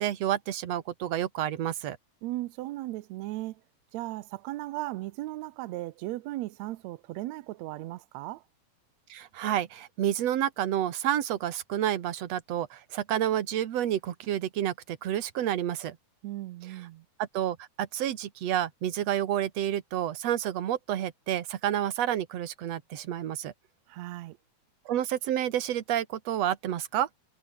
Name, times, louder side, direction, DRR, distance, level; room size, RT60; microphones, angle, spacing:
voice 1, 0.0-2.0 9.1-16.0 17.2-23.5 24.9-27.1, right 11 dB, 55° right, 2.2 m, -29 dB
voice 2, 2.2-3.6 3.9-8.4 16.2-17.0 23.9-24.4, right 17 dB, 90° right, 1.5 m, -36 dB
omnidirectional pair, 4.1 m